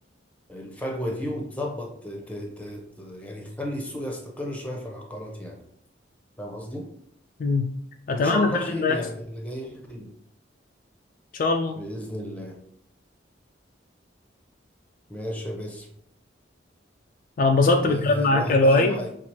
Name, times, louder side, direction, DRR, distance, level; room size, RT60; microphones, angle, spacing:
voice 1, 0.5-5.6 6.4-6.9 8.1-10.1 11.7-12.6 15.1-15.9 17.8-19.1, equal, 5° left, 0 dB, 0.7 m, -33 dB
voice 2, 7.4-7.8 8.1-9.0 11.3-11.8 17.4-19.0, left 2 dB, 45° left, 4 dB, 0.3 m, -21 dB
5.6 x 2.5 x 3.0 m, 0.71 s
head